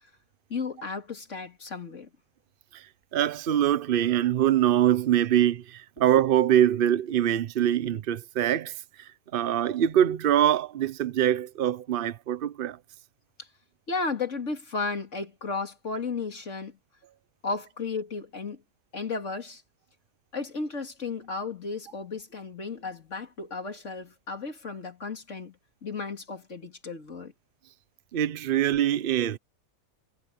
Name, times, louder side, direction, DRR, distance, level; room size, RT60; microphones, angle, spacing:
voice 1, 0.5-2.1 13.4-13.5 13.9-16.8 17.4-18.6 18.9-19.6 20.3-25.6 25.8-27.3, left 4 dB, 45° left, 2.7 m, -34 dB
voice 2, 2.7-12.8 28.1-29.4, right 11 dB, 60° right, 0.6 m, -24 dB
omnidirectional pair, 1.8 m